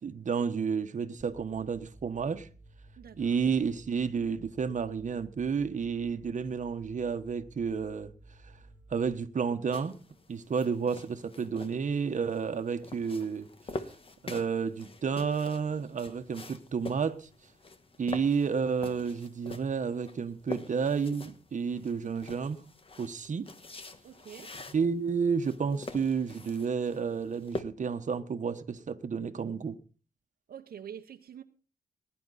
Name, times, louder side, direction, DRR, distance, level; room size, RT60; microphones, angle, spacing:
voice 1, 0.0-2.5 3.2-8.1 8.9-10.0 10.3-13.5 14.2-17.3 18.0-22.6 23.0-23.5 24.4-24.5 24.7-29.8, right 6 dB, 50° right, 1.3 m, -31 dB
sound 1, 1.2-10.2, right 2 dB, 5° right, 3.3 m, -56 dB
voice 2, 3.0-3.4 24.0-24.5 30.5-31.4, right 8 dB, 75° right, 1.0 m, -46 dB
sound 2, 9.7-27.6, left 3 dB, 35° left, 1.4 m, -45 dB
20.0 x 10.5 x 4.2 m
wide cardioid pair, 105°, 16 cm